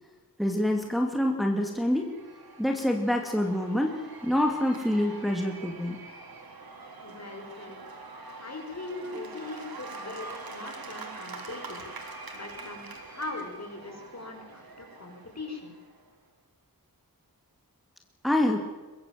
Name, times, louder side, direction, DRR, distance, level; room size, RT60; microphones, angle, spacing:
voice 1, 0.4-2.1 2.6-6.0 9.0-9.2 18.2-18.6, left 1 dB, ahead, 2 dB, 2.6 m, -26 dB
Cheering / Applause / Crowd, 1.4-16.1, right 3 dB, 75° right, 3.6 m, -44 dB
voice 2, 7.0-7.8 8.4-11.9 12.3-15.7, left 3 dB, 45° left, 2 dB, 6.0 m, -41 dB
23.5 x 22.0 x 7.6 m, 1.3 s
wide cardioid pair, 105°, 36 cm